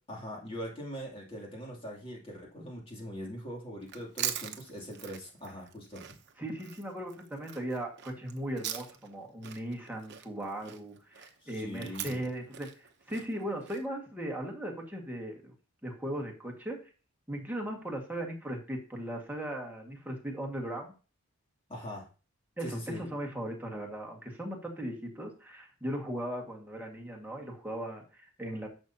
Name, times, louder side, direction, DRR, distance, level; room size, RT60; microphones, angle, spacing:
voice 1, 0.1-6.0 11.4-12.2 21.7-22.1 22.6-23.0, equal, 25° left, -1 dB, 2.8 m, -41 dB
Chewing mastication, 3.8-9.2 9.4-13.8, right 10 dB, 50° right, 0.9 m, -41 dB
voice 2, 6.4-15.5 15.8-16.9 17.3-20.9 22.6-28.7, right 1 dB, 10° right, 0 dB, 1.9 m, -38 dB
11.0 x 7.0 x 2.9 m, 0.34 s
head